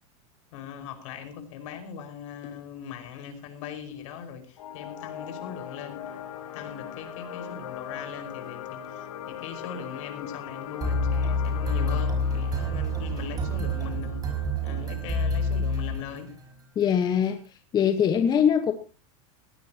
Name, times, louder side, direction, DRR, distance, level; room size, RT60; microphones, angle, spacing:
voice 1, 0.5-6.0 6.5-16.3, left 8 dB, 60° left, 7 dB, 5.4 m, -40 dB
sound 1, 4.6-15.6, left 9 dB, 90° left, 4.4 m, -41 dB
sound 2, 10.8-16.5, left 1 dB, 20° right, 5.6 m, -27 dB
voice 2, 16.8-17.4 17.7-18.7, left 8 dB, 20° left, 7 dB, 1.3 m, -22 dB
20.0 x 17.0 x 2.9 m, 0.34 s
supercardioid pair, 150°, 18 cm